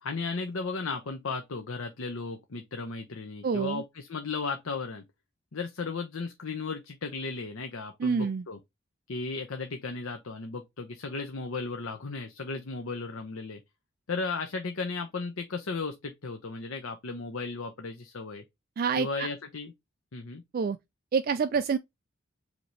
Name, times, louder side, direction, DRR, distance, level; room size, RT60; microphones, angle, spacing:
voice 1, 0.0-5.0 5.5-8.6 9.1-13.6 14.1-18.4 19.0-19.7 20.1-20.4, left 4 dB, 80° left, 0.8 m, -35 dB
voice 2, 3.4-3.8 8.0-8.4 18.8-19.3 20.5-20.8 21.1-21.8, right 5 dB, 45° right, 0.3 m, -27 dB
5.1 x 2.9 x 3.1 m
head